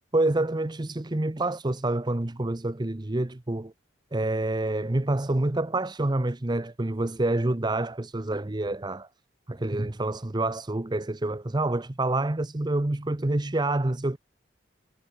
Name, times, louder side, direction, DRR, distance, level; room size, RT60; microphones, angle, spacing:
voice 1, 0.1-3.7 4.1-9.1 9.5-14.2, right 2 dB, 20° right, 0.7 m, -27 dB
head